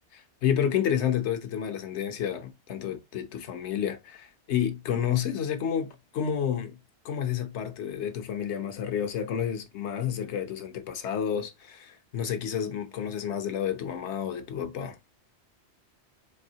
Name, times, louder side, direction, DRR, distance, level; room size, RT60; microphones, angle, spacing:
voice 1, 0.1-6.8 7.0-15.0, left 9 dB, 85° left, 1.0 m, -30 dB
4.4 x 2.7 x 2.7 m
omnidirectional pair, 1.1 m